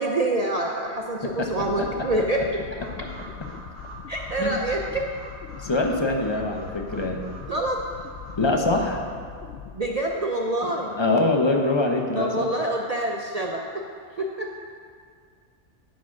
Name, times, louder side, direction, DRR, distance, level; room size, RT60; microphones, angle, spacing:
voice 1, 0.0-2.6 4.1-5.1 7.5-7.8 9.7-10.9 12.2-13.8 14.2-14.5, right 1 dB, 45° right, 0 dB, 0.5 m, -26 dB
sound 1, 0.9-10.5, left 6 dB, 65° left, 0.7 m, -41 dB
sound 2, 2.8-8.3, right 1 dB, 75° right, 3.2 m, -45 dB
voice 2, 5.6-7.2 8.3-9.0 10.9-12.5, left 2 dB, 25° left, 2 dB, 0.7 m, -24 dB
10.0 x 5.0 x 5.9 m, 2.2 s
omnidirectional pair, 1.2 m